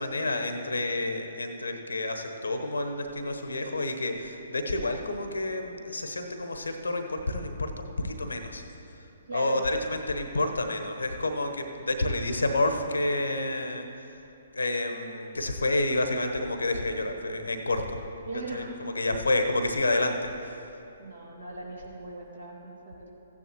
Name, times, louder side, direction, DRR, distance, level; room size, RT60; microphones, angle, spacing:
voice 1, 0.0-8.6 9.3-14.2 14.5-18.0 18.5-20.6, left 2 dB, 80° left, 6 dB, 1.0 m, -29 dB
voice 2, 9.3-9.6 18.3-18.7 21.0-23.1, right 2 dB, 70° right, -3 dB, 2.6 m, -39 dB
15.0 x 9.9 x 3.0 m, 2.8 s
figure-of-eight pair, 130°, 0 cm